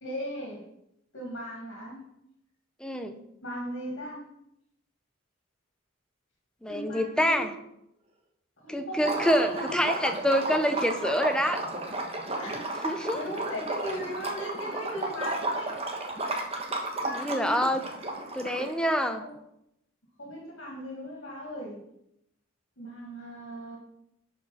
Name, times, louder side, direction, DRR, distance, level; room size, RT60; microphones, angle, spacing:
voice 1, 0.0-0.6 1.1-2.0 3.4-4.2 6.7-7.5 8.6-10.1 12.4-15.8 17.0-17.6 19.2-19.3 20.2-21.8 22.8-23.8, equal, 65° left, -1 dB, 2.3 m, -37 dB
voice 2, 2.8-3.2 6.6-7.5 8.7-11.6 12.8-13.2 17.1-17.8 18.3-19.2, equal, 5° left, 6 dB, 0.6 m, -26 dB
Liquid, 9.0-18.9, right 2 dB, 30° right, 1.2 m, -33 dB
11.0 x 4.8 x 4.3 m, 0.79 s
head